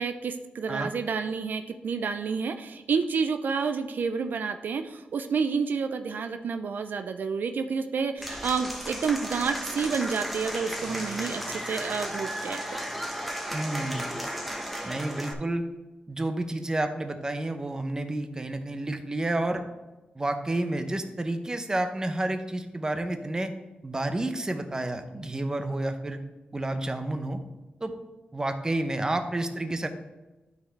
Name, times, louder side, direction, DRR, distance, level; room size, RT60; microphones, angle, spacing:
voice 1, 0.0-12.6, right 5 dB, 70° right, 7 dB, 0.4 m, -29 dB
Applause / Crowd, 8.2-15.3, equal, ahead, 1.1 m, -34 dB
voice 2, 13.5-14.1 14.8-15.6 16.1-19.6 20.1-23.5 23.8-26.2 26.5-27.4 27.8-28.0 28.3-29.9, right 1 dB, 20° right, 7 dB, 0.7 m, -30 dB
12.0 x 4.6 x 3.4 m, 1.1 s
wide cardioid pair, 105°, 3 cm